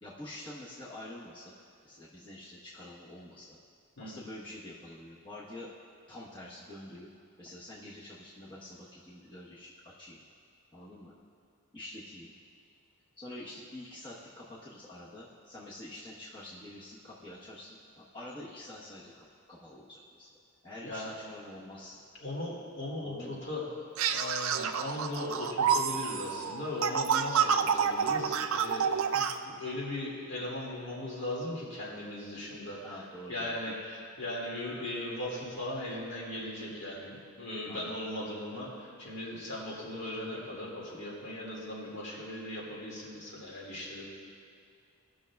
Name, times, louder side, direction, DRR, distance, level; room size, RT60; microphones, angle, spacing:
voice 1, 0.0-1.4 1.8-3.6 4.0-5.7 6.1-7.1 7.4-10.2 10.7-11.1 11.7-12.3 13.2-20.3 20.6-21.9 23.0-23.4 32.8-34.0 37.7-38.0, left 1 dB, 20° left, -9 dB, 1.0 m, -47 dB
voice 2, 20.8-21.2 22.2-23.7 24.1-32.8 33.3-44.0, left 1 dB, 55° left, -5 dB, 2.1 m, -38 dB
sound 1, 24.0-29.3, right 7 dB, 70° right, 0.4 m, -29 dB
19.0 x 6.3 x 2.3 m, 2.3 s
head